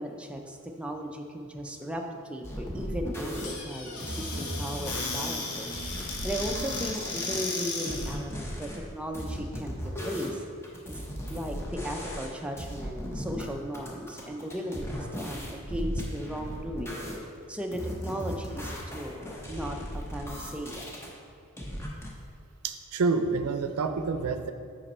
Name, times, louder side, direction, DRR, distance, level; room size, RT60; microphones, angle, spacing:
voice 1, 0.0-2.0 2.3-9.7 10.0-10.4 10.9-11.0 11.3-17.0 17.5-19.8 20.1-20.9, equal, 5° right, 2 dB, 0.5 m, -36 dB
sound 1, 2.4-3.4 4.0-7.4 7.8-8.8 9.1-10.4 10.6-12.3 12.6-13.4 13.7-17.2 17.7-21.1 21.6-22.1, equal, 10° left, 0.9 m, -37 dB
Squeak / Cupboard open or close, 3.3-8.2, left 3 dB, 70° left, 1.0 m, -35 dB
voice 2, 22.6-24.5, right 4 dB, 85° right, 8 dB, 0.5 m, -28 dB
5.5 x 5.3 x 4.2 m, 2.2 s
head